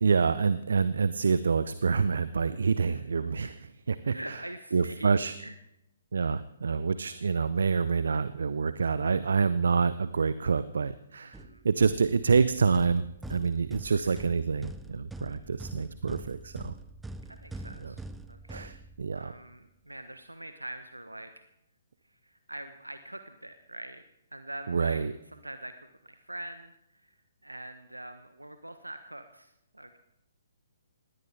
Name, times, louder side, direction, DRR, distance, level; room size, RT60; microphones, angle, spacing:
voice 1, 0.0-3.5 3.9-4.4 4.7-5.3 6.1-11.4 11.6-13.0 13.3-16.7 17.8-17.9 18.5-19.3 24.7-25.1, right 5 dB, 60° right, 15 dB, 0.6 m, -27 dB
voice 2, 2.8-3.5 4.1-5.6 6.2-6.3 6.7-7.4 11.2-11.6 13.8-14.2 17.3-18.7 19.1-21.5 22.1-24.0 24.3-25.0 25.3-27.2 27.4-30.0, right 1 dB, 85° right, 9 dB, 1.2 m, -44 dB
sound 1, 11.3-19.3, right 2 dB, 5° right, 0.6 m, -44 dB
20.0 x 17.5 x 3.5 m, 0.84 s
figure-of-eight pair, 125°, 0 cm